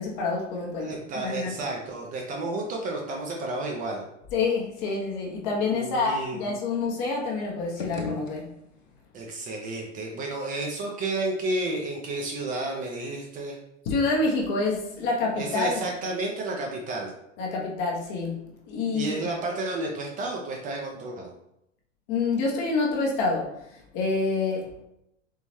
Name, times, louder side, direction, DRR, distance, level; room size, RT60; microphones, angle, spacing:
voice 1, 0.0-1.5 4.3-8.5 13.8-15.8 17.4-19.2 22.1-24.8, left 3 dB, 40° left, -2 dB, 1.1 m, -27 dB
voice 2, 0.8-4.0 5.5-6.4 9.1-13.6 15.4-17.1 18.9-21.3, right 2 dB, 20° right, 0 dB, 0.6 m, -31 dB
sound 1, 7.6-9.0, left 4 dB, 85° left, 0.6 m, -36 dB
3.9 x 3.7 x 3.0 m, 0.80 s
figure-of-eight pair, 90°, 38 cm